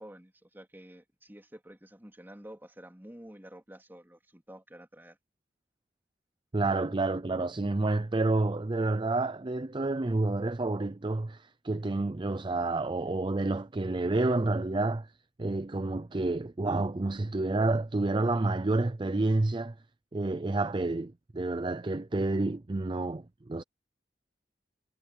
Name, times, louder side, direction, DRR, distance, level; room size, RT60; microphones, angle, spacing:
voice 1, 0.0-5.2, right 1 dB, 10° right, 3.5 m, -50 dB
voice 2, 6.5-15.1 15.4-19.7 20.1-23.6, right 2 dB, 25° right, 0.5 m, -29 dB
head